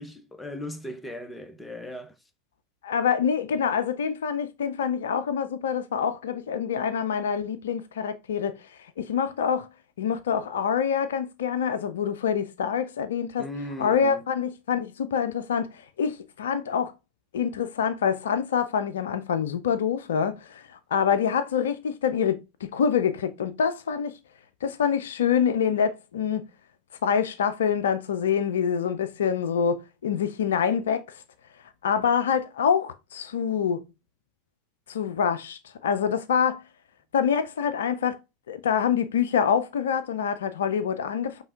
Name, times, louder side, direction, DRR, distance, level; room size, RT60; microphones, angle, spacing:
voice 1, 0.0-2.1 13.4-14.2, left 1 dB, 10° left, 0.7 m, -37 dB
voice 2, 2.8-8.6 9.0-9.7 10.0-13.5 13.8-15.7 16.0-16.9 17.3-20.6 20.9-24.2 24.6-26.4 27.0-31.0 31.8-33.8 34.9-36.6 37.1-38.2 38.5-41.4, left 7 dB, 70° left, 0.4 m, -26 dB
5.4 x 3.2 x 2.4 m
figure-of-eight pair, 85°, 0 cm